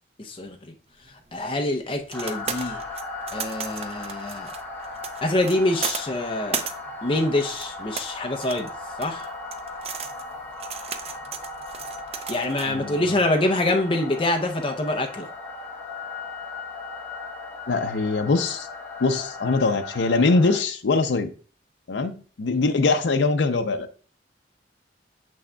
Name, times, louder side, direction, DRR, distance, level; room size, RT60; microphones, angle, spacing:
voice 1, 0.2-0.6 1.3-2.8 3.3-4.5 5.2-6.6 7.0-8.7 9.0-9.3 12.3-15.3, left 1 dB, 30° left, 3 dB, 0.6 m, -25 dB
sound 1, 1.0-12.7, right 6 dB, 35° right, 0.5 m, -36 dB
sound 2, 2.1-20.6, left 3 dB, 10° left, 1.2 m, -37 dB
voice 2, 12.7-13.0 17.7-18.7 19.0-21.3 21.9-23.9, left 3 dB, 75° left, 7 dB, 0.5 m, -22 dB
6.9 x 6.2 x 2.2 m, 0.39 s
head